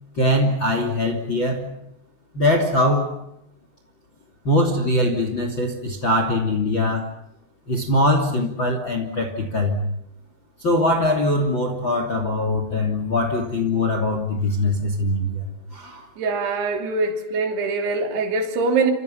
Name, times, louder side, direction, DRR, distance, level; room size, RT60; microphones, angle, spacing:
voice 1, 0.2-1.7 2.3-3.2 4.4-7.1 7.7-9.8 10.6-16.1, left 1 dB, 30° left, 2.9 m, -22 dB
voice 2, 16.2-18.9, right 4 dB, 60° right, 4.8 m, -23 dB
30.0 x 27.5 x 5.8 m
omnidirectional pair, 5.7 m